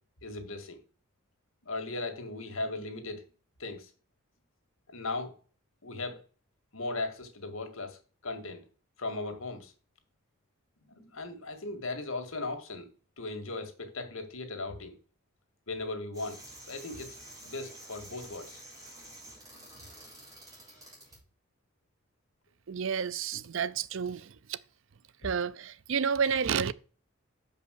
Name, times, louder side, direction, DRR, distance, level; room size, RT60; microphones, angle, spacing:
voice 1, 0.2-0.8 1.6-3.2 3.6-3.9 4.9-5.3 5.8-6.2 6.7-8.0 8.2-8.6 9.0-9.7 10.9-12.9 13.2-14.9 15.7-16.4 16.7-17.2 17.4-18.6, left 2 dB, 75° left, 1.9 m, -37 dB
sound 1, 16.1-21.2, right 1 dB, 15° right, 4.4 m, -49 dB
voice 2, 22.7-24.6 25.2-26.7, right 6 dB, 60° right, 0.5 m, -30 dB
6.6 x 5.4 x 6.4 m
head